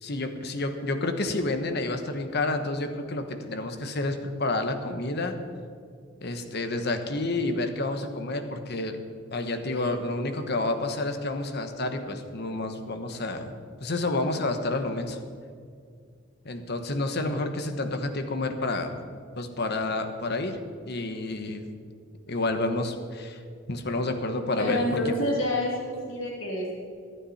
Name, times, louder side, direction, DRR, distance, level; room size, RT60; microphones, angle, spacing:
voice 1, 0.0-5.4 6.2-9.0 9.3-13.5 13.8-15.2 16.4-19.0 19.3-20.6 20.9-21.6 22.3-23.4 23.7-25.2, left 2 dB, 60° left, 7 dB, 1.3 m, -29 dB
voice 2, 24.6-26.7, left 1 dB, 90° left, -3 dB, 3.0 m, -28 dB
24.5 x 9.1 x 4.3 m, 2.2 s
head